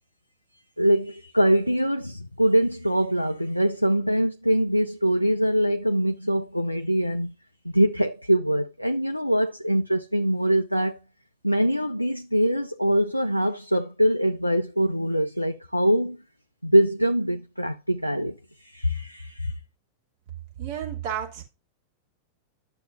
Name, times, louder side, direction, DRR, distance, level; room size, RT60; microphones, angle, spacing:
voice 1, 0.8-7.3 7.6-11.0 11.4-16.2 16.6-18.3 18.6-19.5, equal, 90° left, 0.4 m, -23 dB
voice 2, 20.6-21.4, right 9 dB, 50° right, 2.9 m, -31 dB
11.5 x 6.8 x 2.6 m
figure-of-eight pair, 90°, 0 cm